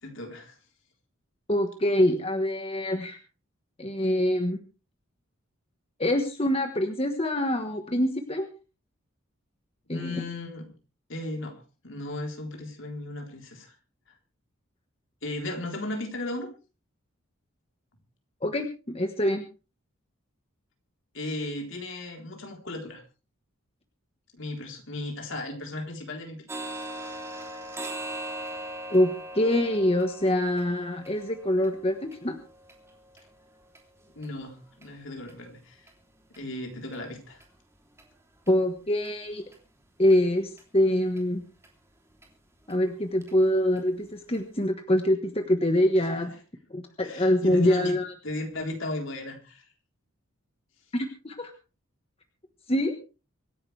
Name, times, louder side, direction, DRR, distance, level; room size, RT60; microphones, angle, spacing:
voice 1, 0.0-0.6 9.9-10.7 11.1-13.7 15.2-16.5 21.1-23.0 24.3-26.5 34.2-35.9 36.4-37.4 46.2-46.4 47.0-48.0 48.2-49.7, left 2 dB, 60° left, 3 dB, 3.9 m, -36 dB
voice 2, 1.5-3.2 3.8-4.6 6.0-8.5 9.9-10.2 18.4-19.4 28.9-32.4 38.5-39.4 40.0-41.4 42.7-46.3 46.7-48.1 50.9-51.5 52.7-52.9, left 1 dB, 30° left, 5 dB, 1.3 m, -25 dB
sound 1, 26.5-34.3 34.7-34.9 35.3-35.4 35.9-36.0 36.3-36.4 36.9-37.0 37.4-37.5 38.0-38.1 38.5-38.6 39.0-39.1 39.5-39.6 40.1-40.2 40.6-40.7 41.2-41.3 41.6-41.7 42.2-42.3 42.7-42.8 43.2-43.3 43.8-43.9 44.3-44.4, right 1 dB, 15° right, 3.2 m, -40 dB
25.0 x 11.0 x 3.4 m, 0.34 s
head